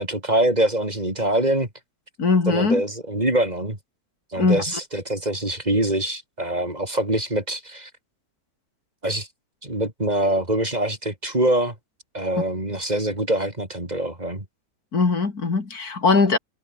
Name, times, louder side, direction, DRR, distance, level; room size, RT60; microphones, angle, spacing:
voice 1, 0.0-1.7 2.5-3.8 4.3-7.9 9.0-9.3 9.6-11.7 12.1-14.4, right 1 dB, 25° right, 4.4 m, -24 dB
voice 2, 2.2-2.8 4.4-4.6 14.9-16.4, left 4 dB, 85° left, 3.4 m, -20 dB
omnidirectional pair, 1.6 m